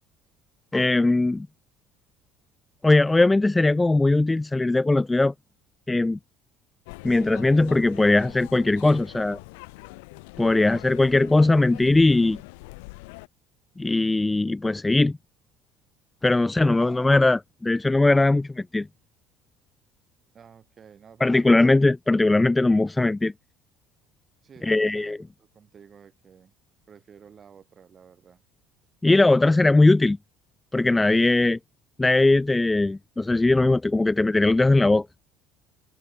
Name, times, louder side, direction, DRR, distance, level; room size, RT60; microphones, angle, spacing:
voice 1, 0.7-1.5 2.8-5.3 5.9-6.2 7.0-9.4 10.4-12.4 13.8-15.2 16.2-18.9 21.2-23.3 24.6-25.2 29.0-30.2 30.7-31.6 32.0-35.1, left 2 dB, 15° left, 0.5 m, -20 dB
sound 1, 6.9-13.3, left 28 dB, 75° left, 3.8 m, -43 dB
voice 2, 10.4-10.8 16.4-16.8 20.3-21.6 24.4-26.5 26.9-28.4, right 7 dB, 40° right, 6.7 m, -52 dB
hypercardioid pair, 65°, 0 cm